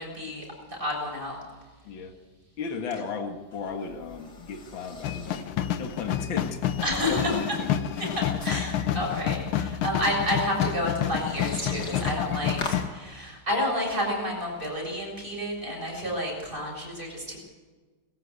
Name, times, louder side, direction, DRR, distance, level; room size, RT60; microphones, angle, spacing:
voice 1, 0.0-1.4 6.8-7.4 8.0-17.4, left 1 dB, 25° right, -1 dB, 7.3 m, -30 dB
voice 2, 2.6-5.5 5.8-6.6 7.1-7.8, left 5 dB, 70° left, 5 dB, 2.4 m, -35 dB
sound 1, 3.2-12.9, left 3 dB, 50° left, 2.9 m, -43 dB
sound 2, 5.0-12.9, left 10 dB, 85° left, 1.8 m, -29 dB
20.5 x 17.0 x 8.3 m, 1.4 s
omnidirectional pair, 2.3 m